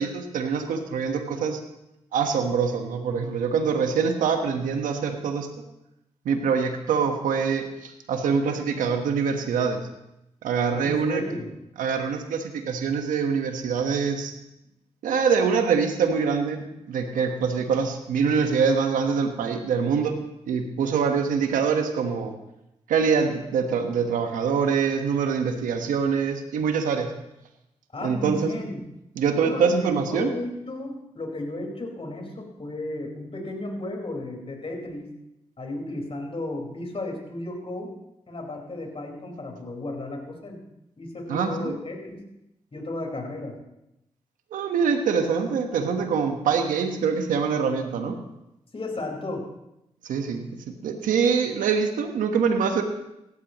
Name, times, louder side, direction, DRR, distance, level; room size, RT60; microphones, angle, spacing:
voice 1, 0.0-1.6 2.1-5.5 6.2-9.8 10.4-11.2 11.8-14.3 15.0-20.2 20.4-22.3 22.9-27.1 28.0-28.5 29.2-30.3 41.3-41.7 44.5-48.2 50.0-52.8, right 6 dB, 85° right, 5 dB, 1.4 m, -24 dB
voice 2, 10.7-11.5 27.9-28.8 29.4-35.1 35.6-37.9 38.3-40.6 41.0-42.2 42.7-43.6 48.7-49.5, left 2 dB, 45° left, 0 dB, 4.8 m, -34 dB
17.5 x 13.5 x 3.1 m, 0.87 s
supercardioid pair, 45°, 13 cm